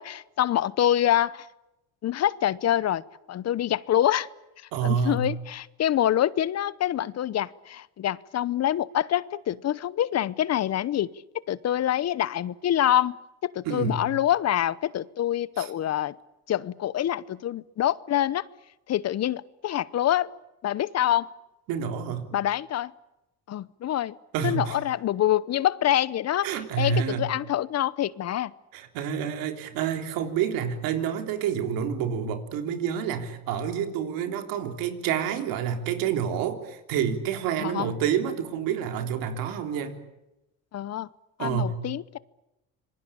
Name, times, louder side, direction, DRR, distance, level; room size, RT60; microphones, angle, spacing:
voice 1, 0.0-1.5 2.0-3.0 3.3-4.3 4.8-11.1 11.5-13.2 13.4-16.1 16.5-18.5 18.9-20.3 20.6-21.3 22.3-22.9 23.5-24.2 24.4-26.5 26.8-28.5 37.6-38.0 40.7-41.1 41.4-42.2, left 12 dB, 50° left, 20 dB, 0.9 m, -26 dB
voice 2, 4.7-5.3 13.7-14.1 15.6-15.7 21.7-22.3 24.3-24.8 26.4-27.3 28.7-40.0 41.4-41.8, right 7 dB, 85° right, 6 dB, 3.6 m, -28 dB
26.5 x 22.5 x 8.7 m, 0.93 s
cardioid pair, 110°, 33 cm